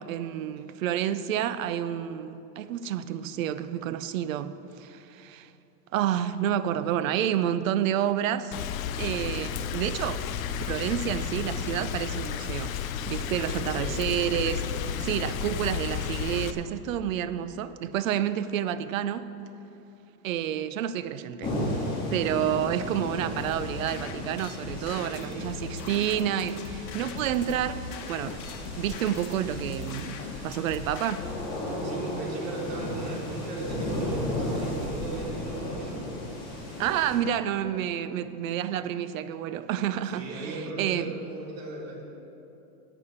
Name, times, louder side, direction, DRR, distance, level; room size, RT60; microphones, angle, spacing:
voice 1, 0.0-5.5 5.9-8.5 9.0-10.2 10.7-12.8 13.1-19.2 20.2-21.5 22.1-28.4 28.8-31.3 36.8-40.5 40.8-41.1, right 10 dB, 55° right, 14 dB, 0.6 m, -29 dB
Rain, 8.5-16.5, left 8 dB, 55° left, 0.7 m, -32 dB
voice 2, 13.7-14.1 14.6-14.7 24.7-25.4 31.8-36.1 40.0-42.0, right 2 dB, 75° right, -2 dB, 3.6 m, -37 dB
sound 1, 21.4-37.2, left 1 dB, 10° left, 2.0 m, -35 dB
sound 2, 23.4-31.4, left 6 dB, 85° left, 1.3 m, -40 dB
11.5 x 8.8 x 7.1 m, 2.9 s
supercardioid pair, 180°, 50 cm